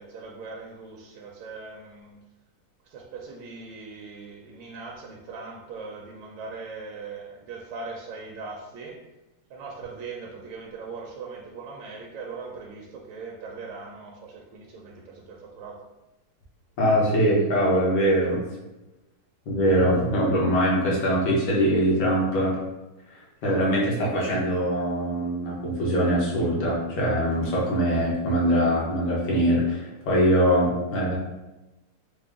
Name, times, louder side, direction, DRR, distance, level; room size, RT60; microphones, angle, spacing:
voice 1, 0.0-2.1 2.9-8.9 9.5-14.9 15.3-15.8, right 4 dB, 75° right, -1 dB, 1.2 m, -40 dB
voice 2, 16.8-18.4 19.5-22.6 23.4-31.2, equal, 65° left, -4 dB, 1.7 m, -22 dB
4.7 x 2.1 x 3.4 m, 1.0 s
omnidirectional pair, 2.4 m